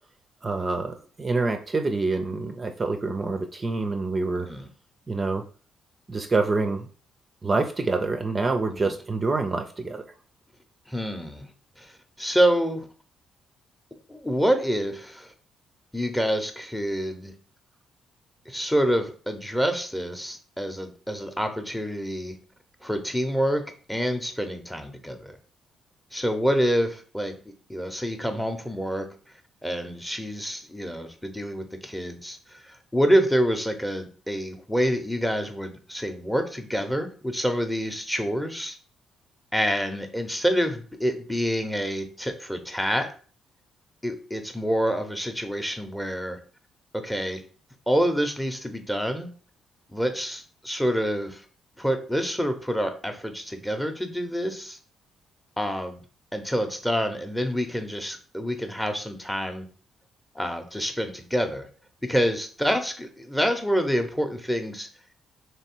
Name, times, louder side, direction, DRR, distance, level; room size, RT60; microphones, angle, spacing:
voice 1, 0.4-4.5 5.1-5.4 6.1-6.9 7.4-10.0, right 3 dB, 30° right, 5 dB, 0.5 m, -26 dB
voice 2, 10.9-11.5 11.8-11.9 12.2-12.9 14.1-15.3 15.9-17.3 18.5-22.4 22.8-25.4 26.1-27.4 27.7-29.1 29.6-38.8 39.5-43.1 44.0-46.4 46.9-47.4 47.9-49.3 49.9-51.4 51.8-54.8 55.6-56.0 56.3-59.7 60.3-61.7 62.0-64.9, equal, 5° left, 6 dB, 0.7 m, -27 dB
3.2 x 2.9 x 4.4 m, 0.41 s
cardioid pair, 90°, 0 cm